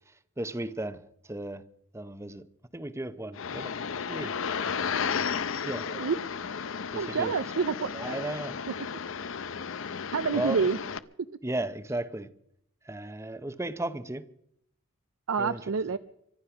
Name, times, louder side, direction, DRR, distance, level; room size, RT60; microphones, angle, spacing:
voice 1, 0.4-1.0 1.3-1.6 1.9-2.4 2.7-3.7 4.1-4.3 4.8-5.4 5.6-5.8 6.9-7.3 7.9-8.6 10.3-10.7 11.4-12.3 12.8-14.2 15.4-15.6, right 1 dB, 15° right, 13 dB, 0.7 m, -35 dB
sound 1, 3.3-11.0, left 6 dB, 70° left, 0.6 m, -33 dB
voice 2, 5.9-6.2 7.0-8.3 10.1-10.8 15.3-16.0, right 5 dB, 80° right, 12 dB, 0.5 m, -28 dB
24.5 x 9.6 x 5.9 m, 0.73 s
head